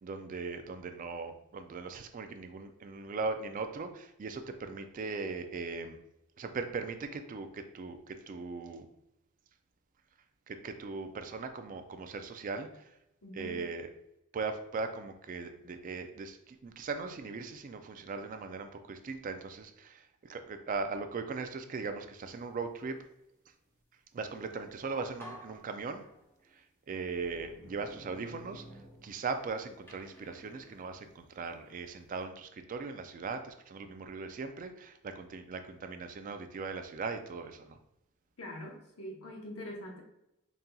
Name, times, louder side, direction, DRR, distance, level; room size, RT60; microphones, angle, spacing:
voice 1, 0.0-6.0 6.4-8.9 10.5-12.9 13.3-13.9 14.3-23.0 24.1-26.0 26.9-28.6 29.0-37.8, right 4 dB, 40° right, 8 dB, 0.3 m, -39 dB
voice 2, 13.2-13.6 38.4-40.0, left 1 dB, 85° left, 0 dB, 0.9 m, -43 dB
sound 1, 24.6-24.8 25.2-26.5 27.1-29.5 29.9-31.7, equal, 10° left, 0.7 m, -52 dB
4.1 x 3.8 x 2.3 m, 0.84 s
head